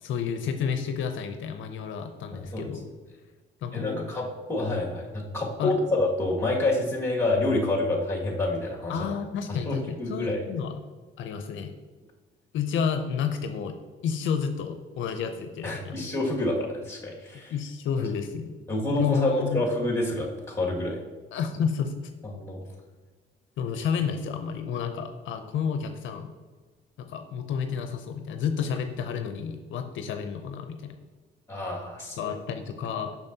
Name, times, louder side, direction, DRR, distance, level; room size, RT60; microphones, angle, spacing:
voice 1, 0.0-2.9 3.6-4.1 5.6-5.8 8.9-10.8 11.2-11.7 12.5-13.8 14.0-16.1 17.5-18.6 18.9-19.6 21.3-22.1 23.6-26.3 27.0-31.0 32.2-33.2, left 7 dB, 75° left, 6 dB, 0.5 m, -30 dB
voice 2, 2.3-2.7 3.7-9.1 9.5-10.4 15.6-17.5 18.7-21.0 22.2-22.6 31.5-32.3, left 2 dB, 15° left, -1 dB, 1.9 m, -28 dB
7.0 x 6.1 x 2.7 m, 1.4 s
cardioid pair, 90°, 20 cm